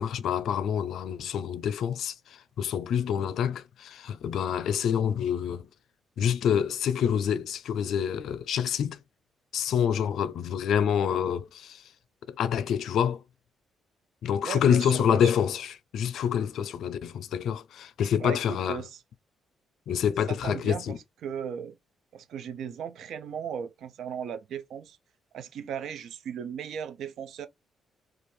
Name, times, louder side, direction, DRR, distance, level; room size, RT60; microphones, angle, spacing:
voice 1, 0.0-5.7 6.2-9.0 9.5-11.8 12.3-13.2 14.2-18.8 19.9-21.0, left 8 dB, 70° left, 0.4 m, -27 dB
voice 2, 14.4-15.3 18.2-19.0 20.3-21.0 21.2-21.7 22.1-25.0 25.3-27.5, right 8 dB, 70° right, 0.4 m, -36 dB
2.6 x 2.4 x 3.0 m
cardioid pair, 90°, 0 cm